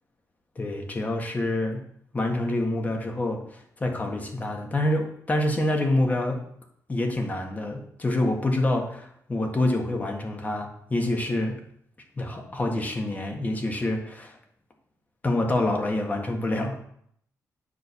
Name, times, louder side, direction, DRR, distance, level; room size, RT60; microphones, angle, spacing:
voice 1, 0.6-1.8 2.1-3.4 3.8-6.4 6.9-11.6 12.2-14.3 15.2-16.8, left 1 dB, 25° left, 3 dB, 1.7 m, -26 dB
9.3 x 4.6 x 7.1 m, 0.68 s
cardioid pair, 120°, 6 cm